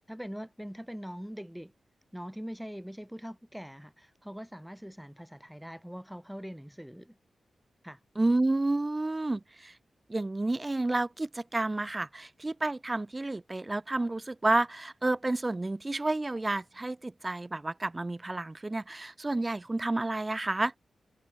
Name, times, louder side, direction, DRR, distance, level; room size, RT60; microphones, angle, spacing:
voice 1, 0.1-1.7 2.1-7.2 7.8-8.0, equal, ahead, 4.8 m, -42 dB
voice 2, 8.2-9.7 10.1-20.7, right 2 dB, 25° right, 1.2 m, -30 dB
cardioid pair, 80°, 0 cm